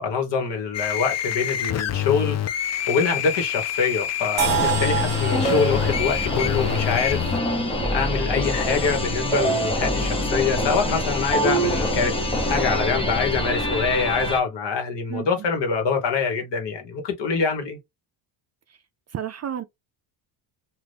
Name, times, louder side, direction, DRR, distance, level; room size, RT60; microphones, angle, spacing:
voice 1, 0.0-7.2 7.9-12.1 12.5-17.8, left 5 dB, 60° left, 1.3 m, -25 dB
sound 1, 0.7-7.4, left 10 dB, 35° left, 0.4 m, -27 dB
sound 2, 4.4-14.4, equal, 10° left, 0.8 m, -25 dB
sound 3, 4.4-8.3, right 11 dB, 65° right, 0.7 m, -29 dB
voice 2, 15.1-15.5 18.7-18.8 19.1-19.6, right 9 dB, 35° right, 0.4 m, -32 dB
2.7 x 2.5 x 3.4 m
cardioid pair, 95°, 48 cm